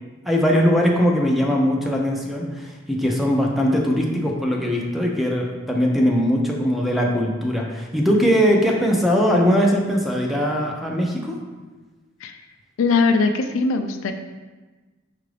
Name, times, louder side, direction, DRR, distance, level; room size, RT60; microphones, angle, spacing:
voice 1, 0.3-11.4, equal, ahead, -1 dB, 0.5 m, -20 dB
voice 2, 12.8-14.1, left 4 dB, 85° left, 6 dB, 0.4 m, -20 dB
5.7 x 2.5 x 3.2 m, 1.2 s
head